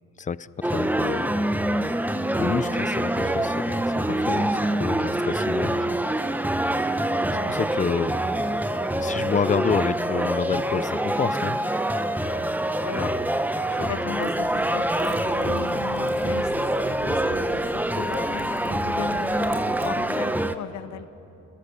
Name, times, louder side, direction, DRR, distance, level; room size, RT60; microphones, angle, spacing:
voice 1, 0.2-1.4 2.4-5.9 7.2-8.2 9.0-11.6 12.2-12.4, left 6 dB, 25° left, 17 dB, 0.6 m, -29 dB
sound 1, 0.6-20.6, right 1 dB, 5° right, 1.0 m, -25 dB
voice 2, 12.8-13.2 13.7-21.1, left 11 dB, 70° left, 15 dB, 0.8 m, -37 dB
Typing, 14.1-19.9, right 3 dB, 85° right, 3.1 m, -45 dB
29.5 x 21.5 x 7.0 m, 2.8 s
cardioid pair, 90°, 30 cm